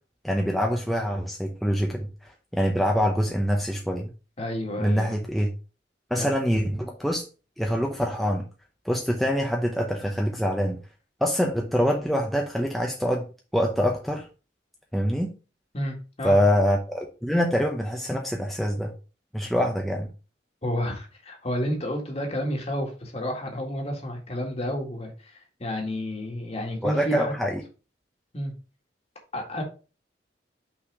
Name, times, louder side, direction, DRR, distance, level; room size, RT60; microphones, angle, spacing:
voice 1, 0.2-4.1 4.8-5.5 6.1-7.3 7.6-8.5 8.8-10.8 11.2-13.3 13.5-14.3 14.9-15.3 16.2-18.9 19.3-20.1 26.8-27.6, equal, ahead, 0 dB, 0.7 m, -25 dB
voice 2, 4.4-5.2 6.2-6.3 15.7-16.4 19.6-19.7 20.6-27.3 28.3-28.5 29.3-29.6, equal, 35° left, 1 dB, 1.9 m, -30 dB
5.8 x 4.2 x 4.7 m, 0.34 s
head